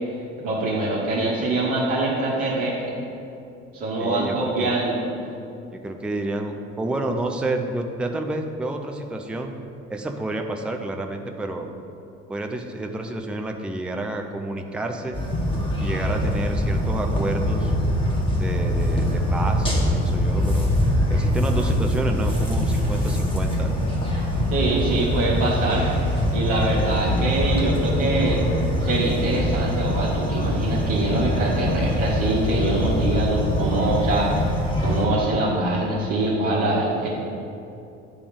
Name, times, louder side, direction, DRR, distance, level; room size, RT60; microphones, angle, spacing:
voice 1, 0.4-2.9 3.7-5.0 24.5-25.9 26.3-28.4 28.8-34.5 34.8-37.1, right 2 dB, 55° right, -8 dB, 1.4 m, -24 dB
voice 2, 4.0-4.8 5.7-9.5 9.9-11.7 12.3-15.2 15.8-17.7 18.4-20.7 21.1-23.7, right 2 dB, 5° right, 3 dB, 0.5 m, -29 dB
sound 1, 15.1-35.1, equal, 15° left, 1.7 m, -23 dB
10.0 x 3.4 x 5.0 m, 2.7 s
figure-of-eight pair, 60°, 37 cm